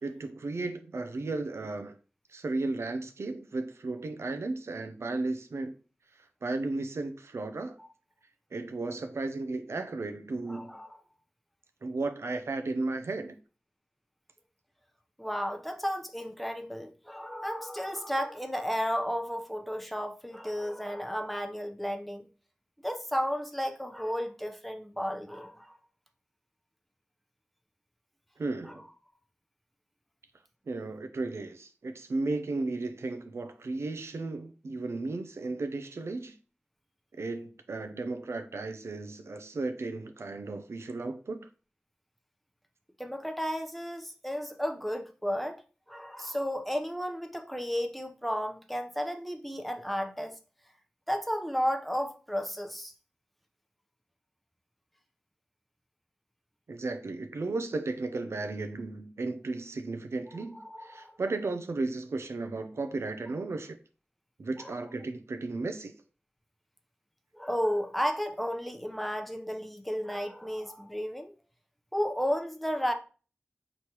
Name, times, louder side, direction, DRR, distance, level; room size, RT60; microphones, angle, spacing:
voice 1, 0.0-2.0 2.3-5.8 6.1-7.8 8.5-10.8 11.8-13.4 28.4-28.9 30.7-36.4 37.2-41.5 56.7-63.8 64.4-65.9, right 3 dB, 90° right, 0.5 m, -34 dB
voice 2, 10.5-11.0 15.2-22.3 22.8-25.8 28.6-28.8 43.0-45.6 45.9-50.4 51.1-52.9 60.5-61.1 62.8-63.0 64.6-64.8 67.3-71.3 71.9-72.9, equal, ahead, 0.7 m, -33 dB
5.0 x 3.1 x 2.9 m
wide cardioid pair, 50°, 4 cm